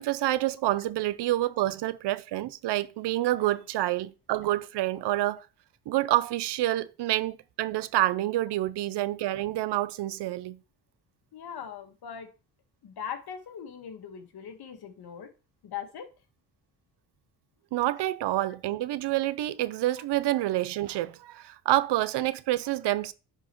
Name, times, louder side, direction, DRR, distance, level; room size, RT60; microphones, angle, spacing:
voice 1, 0.0-5.5 5.9-10.6 17.7-23.1, right 15 dB, 80° right, 0.6 m, -28 dB
voice 2, 11.3-12.3 12.8-15.3 15.6-16.1, left 8 dB, 65° left, 1.6 m, -40 dB
10.5 x 4.6 x 3.1 m
cardioid pair, 90°, 40 cm